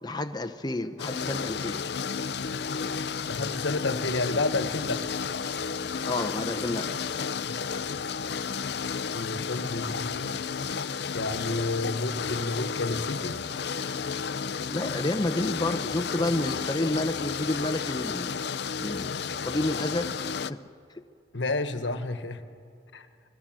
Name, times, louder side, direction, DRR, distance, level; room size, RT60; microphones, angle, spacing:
voice 1, 0.0-1.8 6.1-6.9 14.7-18.4 18.8-19.1 19.4-20.1 20.5-20.6, left 1 dB, 20° left, 7 dB, 0.7 m, -30 dB
sound 1, 1.0-20.5, left 6 dB, 60° left, 0.6 m, -32 dB
voice 2, 3.3-5.0 9.1-10.4 11.1-13.4 21.3-22.4 22.9-23.1, left 2 dB, 75° left, 10 dB, 1.4 m, -30 dB
29.5 x 20.5 x 7.6 m, 2.3 s
head